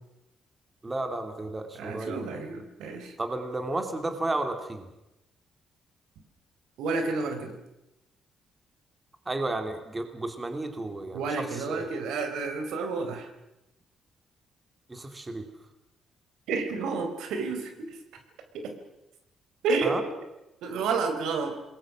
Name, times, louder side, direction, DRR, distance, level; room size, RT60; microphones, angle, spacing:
voice 1, 0.8-2.3 3.2-4.9 9.3-11.9 14.9-15.5 19.8-20.0, right 2 dB, 20° right, 6 dB, 2.9 m, -32 dB
voice 2, 1.7-3.1 6.8-7.5 11.1-13.3 16.5-18.0 18.5-18.7 19.6-20.0 20.6-21.6, right 4 dB, 90° right, 6 dB, 4.4 m, -30 dB
27.5 x 21.5 x 6.3 m, 0.92 s
cardioid pair, 120°, 0 cm